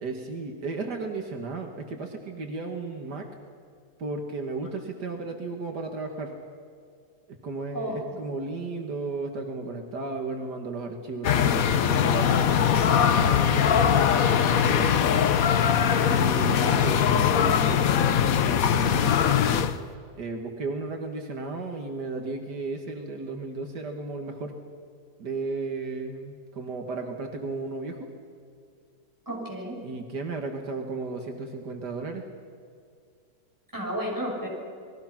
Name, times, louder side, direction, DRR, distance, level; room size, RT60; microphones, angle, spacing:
voice 1, 0.0-3.3 4.0-6.3 7.3-14.1 14.5-14.9 16.0-17.9 18.3-19.5 20.2-24.6 25.2-28.1 29.8-32.3, right 3 dB, 75° right, 3 dB, 2.2 m, -34 dB
voice 2, 7.7-8.3 16.6-17.1 29.3-29.8 33.7-34.5, equal, 10° right, -3 dB, 6.9 m, -33 dB
sound 1, 11.2-19.8, left 8 dB, 60° left, 1.3 m, -21 dB
29.0 x 21.0 x 5.9 m, 2.2 s
omnidirectional pair, 1.8 m